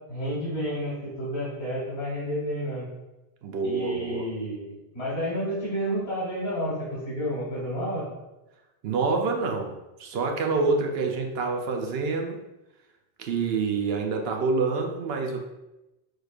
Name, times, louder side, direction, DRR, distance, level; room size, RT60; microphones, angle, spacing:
voice 1, 0.1-2.9 3.6-8.1, equal, 85° left, -7 dB, 1.6 m, -30 dB
voice 2, 3.4-4.3 8.8-12.4 13.2-15.4, right 4 dB, 75° right, 3 dB, 0.8 m, -27 dB
6.2 x 3.2 x 2.4 m, 0.99 s
omnidirectional pair, 1.1 m